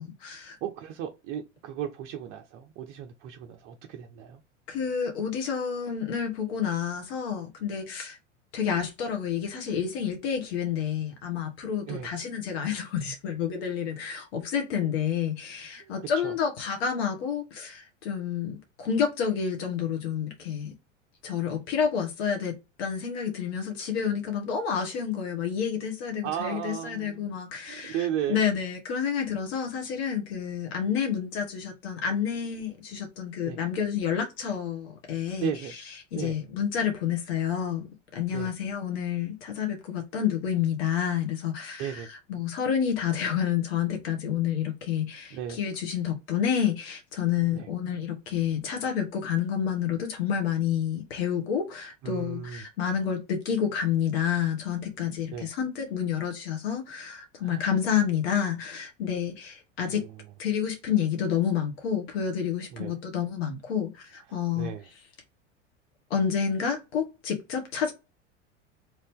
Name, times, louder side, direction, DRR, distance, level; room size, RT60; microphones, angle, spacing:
voice 1, 0.0-0.6 4.7-8.2 8.5-20.7 21.2-37.9 38.1-60.0 60.4-64.7 66.1-67.9, left 8 dB, 55° left, 1.1 m, -29 dB
voice 2, 0.6-4.4 11.9-12.1 15.8-16.3 26.2-27.3 27.7-28.4 33.4-33.6 35.4-35.7 36.2-36.3 38.3-38.5 41.8-42.1 45.3-45.6 47.5-47.7 52.0-52.6 55.3-55.5 57.4-57.7 62.7-62.9 64.3-64.8, right 9 dB, 35° right, 0.5 m, -35 dB
2.9 x 2.7 x 3.4 m
figure-of-eight pair, 80°, 37 cm